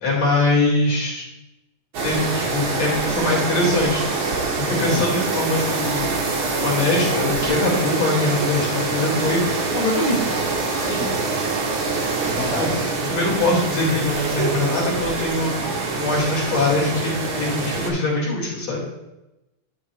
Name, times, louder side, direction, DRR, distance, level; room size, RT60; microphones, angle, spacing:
voice 1, 0.0-1.3 2.0-6.1 6.6-10.3 12.5-12.8 13.1-15.6 15.9-18.8, left 2 dB, 50° left, -5 dB, 3.2 m, -22 dB
sound 1, 1.9-17.9, right 3 dB, 85° right, 1.1 m, -25 dB
voice 2, 10.8-11.2 12.2-12.8, left 2 dB, ahead, -5 dB, 1.4 m, -30 dB
11.0 x 8.0 x 2.3 m, 0.97 s
omnidirectional pair, 4.0 m